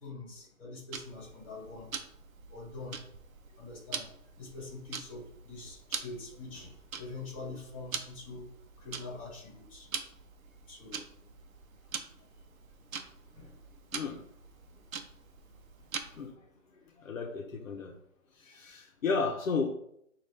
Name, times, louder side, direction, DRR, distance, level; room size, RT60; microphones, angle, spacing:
voice 1, 0.0-1.9 2.5-3.0 3.6-4.1 4.4-6.7 7.0-8.4 8.8-9.9 10.7-11.0 13.3-13.5, left 3 dB, 25° left, -2 dB, 1.2 m, -44 dB
Tick-tock, 0.9-16.3, right 6 dB, 75° right, 0.7 m, -44 dB
voice 2, 17.0-17.9 18.4-19.7, left 4 dB, 65° left, 2 dB, 0.8 m, -33 dB
5.1 x 2.5 x 3.2 m, 0.74 s
hypercardioid pair, 175°, 42 cm